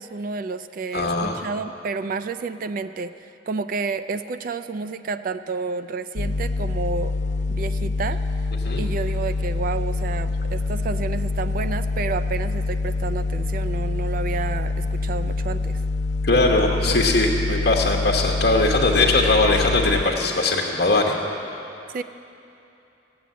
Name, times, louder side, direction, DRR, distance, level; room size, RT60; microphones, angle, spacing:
voice 1, 0.0-7.1 7.5-8.2 8.8-15.8 16.9-17.0 21.9-22.0, right 4 dB, 50° right, 11 dB, 0.3 m, -30 dB
voice 2, 0.9-1.3 8.6-8.8 16.2-21.2, left 2 dB, 60° left, 0 dB, 1.1 m, -20 dB
sound 1, 6.2-20.0, left 3 dB, 40° left, 0.5 m, -25 dB
15.5 x 7.6 x 9.3 m, 2.8 s
head